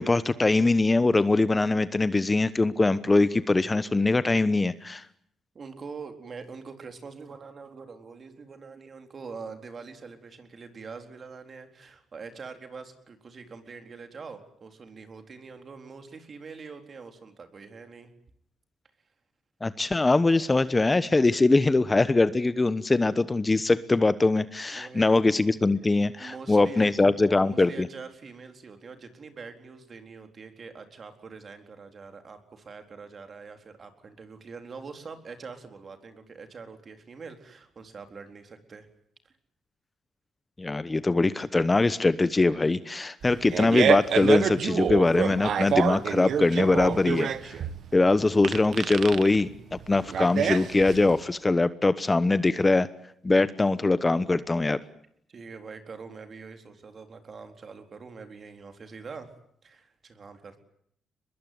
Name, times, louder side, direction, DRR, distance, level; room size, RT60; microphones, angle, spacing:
voice 1, 0.0-5.0 19.6-27.9 40.6-47.6 47.9-52.9 53.2-54.8, left 3 dB, 20° left, 14 dB, 1.0 m, -22 dB
voice 2, 5.5-18.1 24.6-25.2 26.2-38.9 55.3-59.3 59.6-60.6, right 5 dB, 40° right, 6 dB, 4.1 m, -44 dB
Fart, 43.2-51.2, right 8 dB, 60° right, 1.7 m, -27 dB
23.5 x 21.5 x 9.5 m, 0.69 s
cardioid pair, 90°, 0 cm